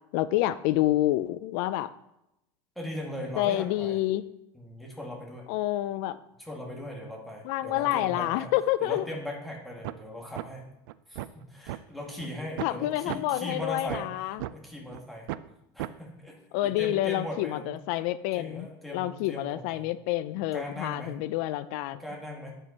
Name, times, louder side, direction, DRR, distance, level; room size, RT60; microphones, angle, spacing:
voice 1, 0.1-1.9 3.4-4.2 5.5-6.2 7.4-9.0 12.6-14.4 16.5-18.7 18.9-22.0, left 15 dB, 60° left, 14 dB, 0.4 m, -28 dB
voice 2, 2.8-4.0 4.5-5.5 6.4-8.5 8.8-10.7 11.1-14.1 14.5-15.3 15.7-17.8 18.3-19.9 20.3-21.2 22.0-22.5, left 1 dB, ahead, -2 dB, 1.7 m, -39 dB
sound 1, 9.8-10.0 10.4-10.5 10.9-11.8 12.2-12.3 12.6-12.7 13.1-13.2 13.6-14.5 14.9-15.0 15.3-15.5 15.8-15.9, right 16 dB, 80° right, 0.4 m, -35 dB
9.1 x 5.4 x 4.1 m, 0.86 s
supercardioid pair, 150°, 11 cm